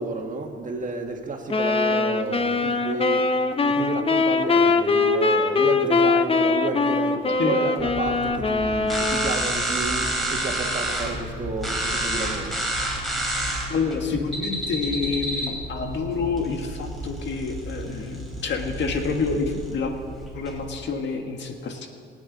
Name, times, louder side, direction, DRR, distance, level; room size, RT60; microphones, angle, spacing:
voice 1, 0.0-3.3 3.6-12.5, right 3 dB, 40° right, 3 dB, 1.8 m, -31 dB
sound 1, 1.5-9.5, left 3 dB, 30° left, 0.8 m, -22 dB
sound 2, 7.8-20.7, right 1 dB, ahead, 4.1 m, -30 dB
voice 2, 13.7-19.9 20.3-21.9, left 4 dB, 65° left, 4 dB, 1.7 m, -28 dB
22.5 x 9.3 x 4.0 m, 2.3 s
cardioid pair, 90°, 20 cm